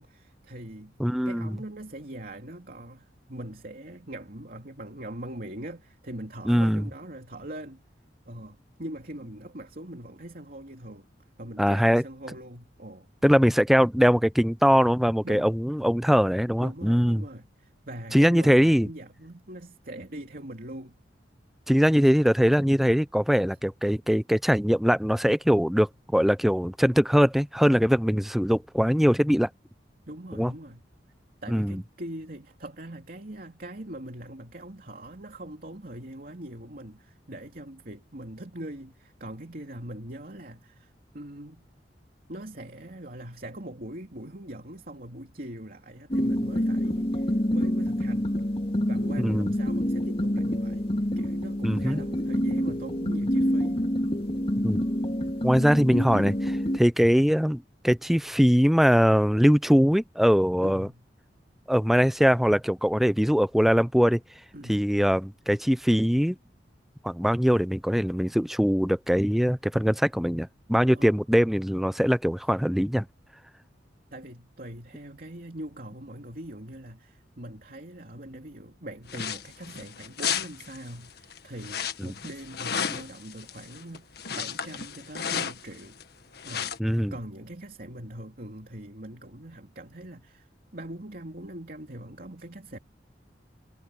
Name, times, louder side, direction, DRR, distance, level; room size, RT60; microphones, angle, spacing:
voice 1, 0.0-1.0 1.2-7.8 8.3-11.1 11.4-13.1 15.2-15.5 16.6-21.0 30.1-30.8 31.4-41.6 42.3-48.3 48.8-50.8 51.2-53.8 60.6-61.0 64.5-64.9 70.9-71.1 74.1-86.0 86.4-86.8 87.1-92.8, right 1 dB, 55° right, 3.0 m, -42 dB
voice 2, 1.0-1.6 6.5-6.8 11.6-12.0 13.2-17.2 18.1-18.9 21.7-29.5 30.4-30.5 31.5-31.8 49.2-49.5 51.6-52.0 54.6-54.8 55.4-60.9 61.7-64.2 64.7-66.4 67.0-73.0 82.0-82.1 86.8-87.1, equal, ahead, 0.5 m, -22 dB
sound 1, 46.1-56.8, equal, 30° left, 2.5 m, -27 dB
sound 2, 79.1-86.0 86.3-86.8, left 7 dB, 60° left, 1.7 m, -33 dB
head